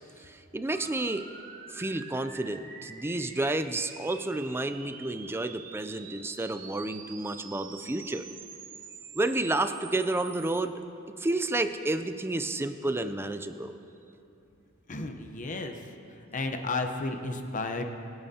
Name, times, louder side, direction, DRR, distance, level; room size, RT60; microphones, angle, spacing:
voice 1, 0.3-1.3 1.7-8.2 9.2-10.7 11.2-13.7, right 2 dB, 10° right, 9 dB, 0.4 m, -30 dB
sound 1, 0.7-10.6, right 6 dB, 45° right, 0.8 m, -46 dB
voice 2, 14.9-15.8 16.3-17.8, left 3 dB, 40° left, 5 dB, 0.8 m, -32 dB
25.5 x 8.8 x 2.8 m, 2.8 s
head